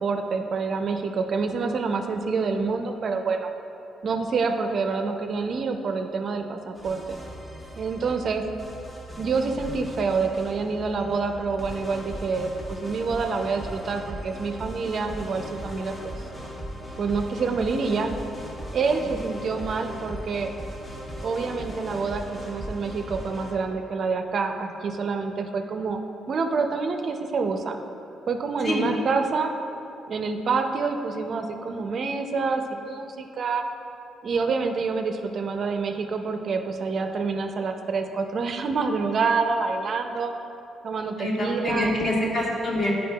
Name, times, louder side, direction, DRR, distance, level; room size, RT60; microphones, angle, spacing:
voice 1, 0.0-3.5 4.0-7.2 7.8-8.4 9.2-16.1 17.0-18.1 18.7-20.5 21.2-26.0 26.3-27.8 28.3-29.5 30.1-33.7 34.2-40.3 40.8-41.9, right 4 dB, 55° right, 5 dB, 0.4 m, -27 dB
sound 1, 6.8-23.5, equal, 25° left, 1.1 m, -38 dB
voice 2, 41.2-42.9, left 1 dB, 40° left, -3 dB, 1.3 m, -26 dB
8.5 x 5.1 x 2.2 m, 2.7 s
cardioid pair, 90°, 0 cm